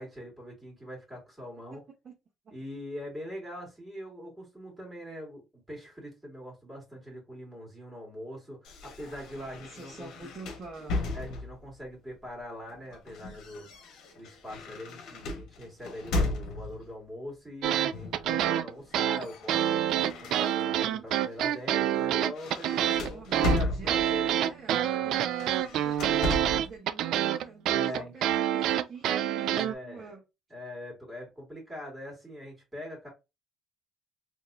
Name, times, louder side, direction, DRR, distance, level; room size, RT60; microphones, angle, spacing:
voice 1, 0.0-1.8 2.5-10.3 11.1-13.7 14.2-25.0 27.7-28.1 29.5-30.1 30.5-33.1, equal, 5° right, 2.2 m, -43 dB
sound 1, 8.6-11.7 12.7-16.9 17.9-18.3 18.6-20.9 21.4-21.6 21.9-24.3 25.2-26.7, left 2 dB, 65° left, 1.3 m, -35 dB
voice 2, 9.1-11.1 23.0-30.2, right 4 dB, 40° right, 1.2 m, -47 dB
sound 2, 17.6-29.7, right 11 dB, 65° right, 0.3 m, -27 dB
4.0 x 3.0 x 2.6 m
cardioid pair, 135°, 0 cm